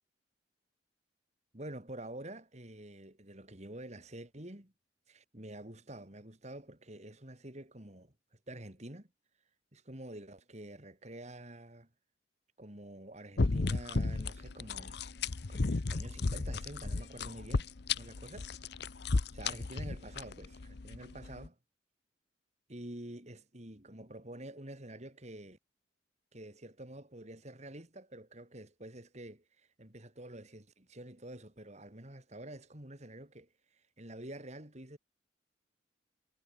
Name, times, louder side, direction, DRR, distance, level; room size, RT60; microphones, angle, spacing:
voice 1, 1.5-4.7 5.1-8.1 8.5-9.1 9.7-11.9 12.6-15.0 15.5-21.6 22.7-25.6 26.3-35.0, right 1 dB, 35° right, 3.4 m, -48 dB
sound 1, 13.4-21.5, left 3 dB, 60° left, 0.8 m, -34 dB
head